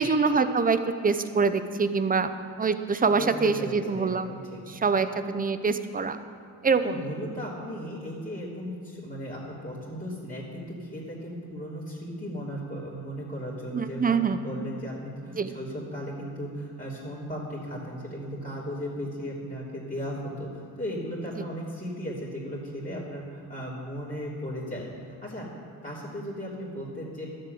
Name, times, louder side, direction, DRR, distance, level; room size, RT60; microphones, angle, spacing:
voice 1, 0.0-2.3 2.6-4.3 4.8-6.2 6.6-7.0 13.7-14.4 15.4-15.5, right 5 dB, 20° right, 11 dB, 0.7 m, -25 dB
voice 2, 3.1-4.6 4.9-5.0 6.7-24.9 25.2-25.5 25.8-27.3, equal, 20° left, -8 dB, 3.1 m, -36 dB
12.5 x 7.8 x 8.0 m, 2.3 s
cardioid pair, 100°, 39 cm